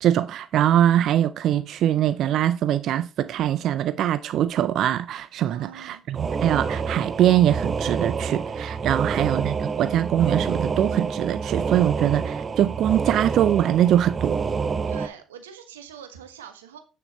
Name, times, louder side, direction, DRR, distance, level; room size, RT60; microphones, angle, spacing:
voice 1, 0.0-14.4, right 11 dB, 60° right, 0.4 m, -22 dB
voice 2, 5.4-6.1 14.9-16.8, right 8 dB, 85° right, 1.2 m, -44 dB
sound 1, 6.1-15.1, right 5 dB, 35° right, 0.9 m, -28 dB
8.6 x 6.7 x 4.1 m
hypercardioid pair, 55°, 0 cm